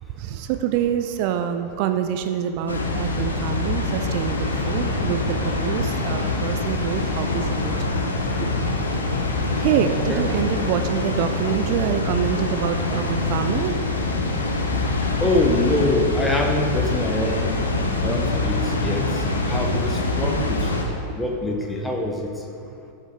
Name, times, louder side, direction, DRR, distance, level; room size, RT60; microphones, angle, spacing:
voice 1, 0.1-7.7 9.6-13.8 19.7-19.8, right 9 dB, 45° right, 7 dB, 0.4 m, -26 dB
Water, 2.7-20.8, left 2 dB, 75° left, 1.2 m, -24 dB
voice 2, 9.9-10.3 15.2-17.6 18.0-20.7 21.2-22.4, left 1 dB, 10° left, 1 dB, 1.2 m, -25 dB
12.5 x 6.4 x 3.7 m, 2.5 s
figure-of-eight pair, 90°, 0 cm